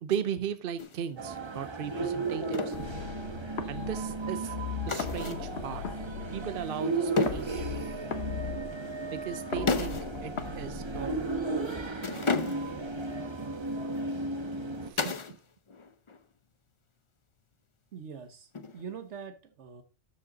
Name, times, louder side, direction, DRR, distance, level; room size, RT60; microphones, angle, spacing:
voice 1, 0.0-2.7 3.7-4.5 4.8-5.8 6.3-7.7 9.1-11.3 14.8-15.2, right 8 dB, 55° right, 0.8 m, -37 dB
sound 1, 0.8-1.0 2.5-2.9 4.9-5.5 7.2-7.6 9.7-10.1 10.4-10.5 12.0-12.8 15.0-15.4 15.7-16.2 18.5-19.0, left 4 dB, 30° left, 0.6 m, -32 dB
sound 2, 1.2-14.9, right 3 dB, 25° right, 1.0 m, -35 dB
sound 3, 2.7-11.7, left 6 dB, 65° left, 1.3 m, -39 dB
voice 2, 17.9-19.8, right 6 dB, 75° right, 1.3 m, -43 dB
13.0 x 5.2 x 3.9 m
omnidirectional pair, 1.2 m